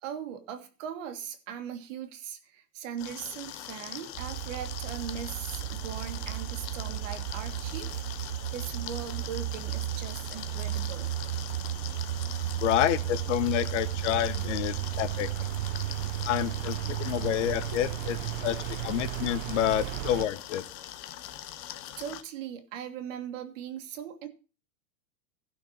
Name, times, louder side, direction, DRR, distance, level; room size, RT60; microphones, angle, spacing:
voice 1, 0.0-11.1 22.0-24.3, right 8 dB, 60° right, 8 dB, 1.8 m, -40 dB
sound 1, 3.0-22.2, left 12 dB, 25° left, 0.5 m, -42 dB
sound 2, 4.1-20.3, right 14 dB, 45° right, 0.4 m, -34 dB
voice 2, 12.6-15.3 16.2-18.6 18.8-20.6, left 13 dB, 55° left, 14 dB, 0.8 m, -28 dB
16.0 x 5.8 x 4.2 m, 0.34 s
supercardioid pair, 165°, 43 cm